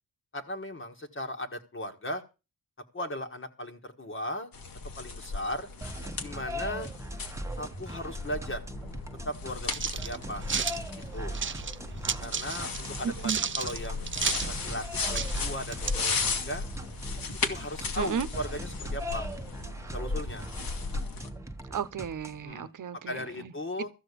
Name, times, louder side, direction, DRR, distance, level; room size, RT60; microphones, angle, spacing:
voice 1, 0.3-2.2 2.9-4.5 5.0-5.7 6.2-6.9 7.6-8.6 9.2-10.5 11.1-11.4 12.2-16.7 17.5-19.3 19.9-20.5 22.4-22.7 23.1-23.9, left 1 dB, 35° left, 1.7 m, -37 dB
sound 1, 4.5-21.3, left 4 dB, 75° left, 2.0 m, -36 dB
sound 2, 5.8-22.5, right 1 dB, 10° right, 1.1 m, -40 dB
sound 3, 9.7-10.8 11.3-11.8 12.0-13.0 13.2-14.5 14.8-14.9 15.1-15.9, right 7 dB, 35° right, 0.6 m, -32 dB
voice 2, 13.0-13.4 18.0-18.3 21.7-23.5, right 7 dB, 60° right, 1.0 m, -33 dB
14.0 x 6.2 x 8.2 m
wide cardioid pair, 110°, 35 cm